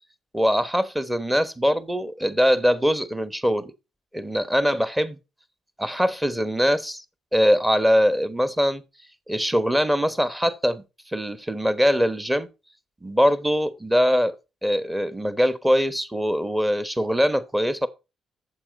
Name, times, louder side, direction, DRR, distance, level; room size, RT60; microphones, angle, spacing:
voice 1, 0.3-3.7 4.1-5.2 5.8-7.0 7.3-8.8 9.3-10.8 11.1-12.5 13.0-14.4 14.6-17.9, equal, 10° right, 1.0 m, -22 dB
8.6 x 7.3 x 5.2 m
cardioid pair, 90°, 0 cm